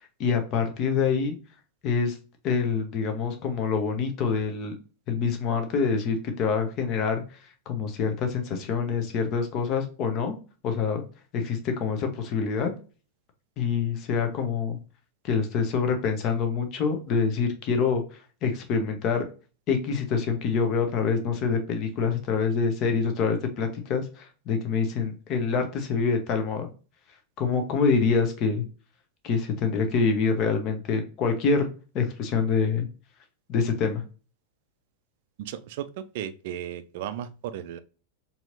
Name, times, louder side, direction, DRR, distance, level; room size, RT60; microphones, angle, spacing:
voice 1, 0.0-1.3 1.8-2.1 2.4-4.7 5.1-7.2 7.7-10.3 10.6-11.0 11.3-12.7 13.6-14.8 15.2-18.0 18.4-19.2 19.7-26.7 27.4-28.7 29.2-31.7 31.9-32.9 33.5-34.0, left 5 dB, 35° left, 5 dB, 0.9 m, -26 dB
voice 2, 35.4-35.8 36.1-37.8, right 10 dB, 50° right, 12 dB, 0.4 m, -35 dB
4.3 x 2.8 x 2.5 m, 0.36 s
figure-of-eight pair, 90°, 0 cm